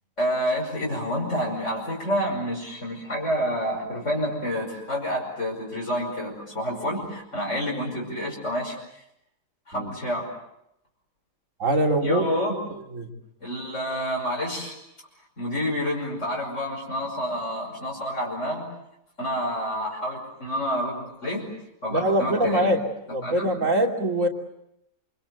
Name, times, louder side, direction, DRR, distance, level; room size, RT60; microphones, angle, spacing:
voice 1, 0.2-8.8 9.7-10.3 12.0-12.6 13.4-14.8 15.4-18.7 19.2-21.5 21.8-22.7 23.2-23.5, equal, 60° left, -3 dB, 6.1 m, -28 dB
voice 2, 11.6-12.3 12.9-13.1 21.9-22.8 23.1-24.3, right 1 dB, 70° right, 3 dB, 3.3 m, -23 dB
27.5 x 25.5 x 8.0 m, 0.81 s
omnidirectional pair, 1.4 m